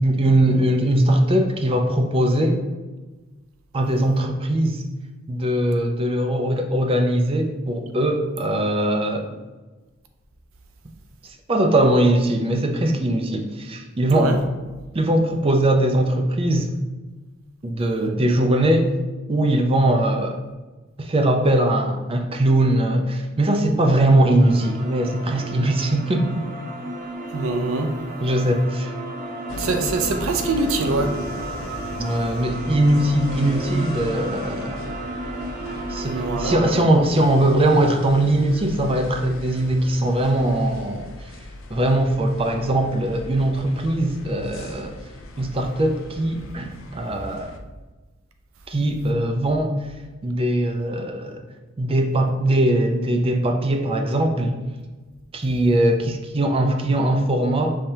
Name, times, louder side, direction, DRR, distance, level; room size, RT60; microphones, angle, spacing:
voice 1, 0.0-2.6 3.7-4.8 5.3-9.3 11.5-14.3 14.9-16.7 17.6-18.9 19.3-20.4 21.0-26.5 28.2-28.9 32.0-34.9 35.9-41.1 41.7-45.0 45.4-47.6 48.7-49.7 50.2-51.4 51.8-54.6 55.3-57.8, right 1 dB, 30° right, 4 dB, 0.5 m, -20 dB
voice 2, 14.1-14.4 27.3-27.9 29.6-31.1 36.1-36.9, right 3 dB, 90° right, 5 dB, 0.5 m, -24 dB
sound 1, 24.4-36.7, right 1 dB, 50° right, 0.8 m, -33 dB
sound 2, 29.5-47.6, left 2 dB, 75° left, 0.5 m, -37 dB
5.5 x 3.3 x 2.8 m, 1.2 s
head